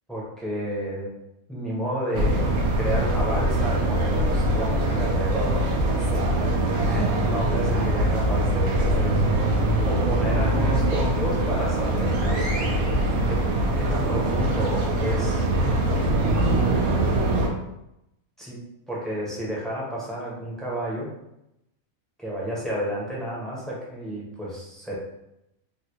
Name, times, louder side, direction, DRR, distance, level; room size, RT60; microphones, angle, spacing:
voice 1, 0.1-1.1 1.5-2.4 2.8-6.2 6.8-12.8 13.3-13.4 13.8-15.5 18.4-18.6 18.9-21.1 22.2-24.9, equal, ahead, -6 dB, 0.6 m, -31 dB
sound 1, 2.1-17.5, right 1 dB, 85° right, 1.1 m, -23 dB
3.2 x 2.6 x 2.9 m, 0.86 s
omnidirectional pair, 1.5 m